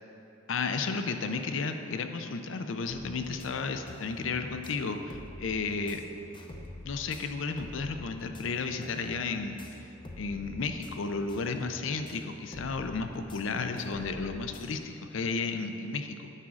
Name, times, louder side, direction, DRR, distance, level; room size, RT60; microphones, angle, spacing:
voice 1, 0.5-6.0 6.8-9.6 10.2-16.3, left 4 dB, 70° left, 7 dB, 0.5 m, -33 dB
sound 1, 2.9-14.8, left 1 dB, 25° left, 0.6 m, -47 dB
9.7 x 3.6 x 6.3 m, 3.0 s
head